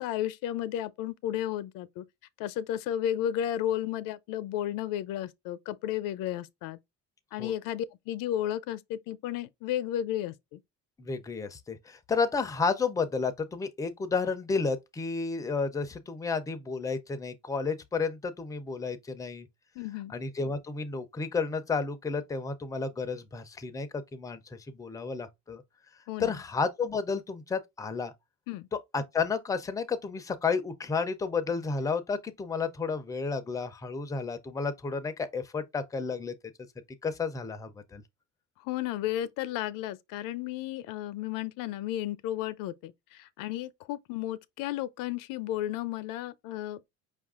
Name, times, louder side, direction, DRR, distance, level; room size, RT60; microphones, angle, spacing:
voice 1, 0.0-2.1 2.4-6.8 7.3-10.6 19.8-20.1 26.1-26.4 28.5-28.7 38.6-46.8, left 12 dB, 85° left, 0.6 m, -33 dB
voice 2, 11.0-19.5 20.1-25.6 26.2-28.1 28.9-36.3 37.0-38.0, left 4 dB, 10° left, 0.4 m, -31 dB
5.2 x 2.4 x 3.5 m
cardioid pair, 165°, 32 cm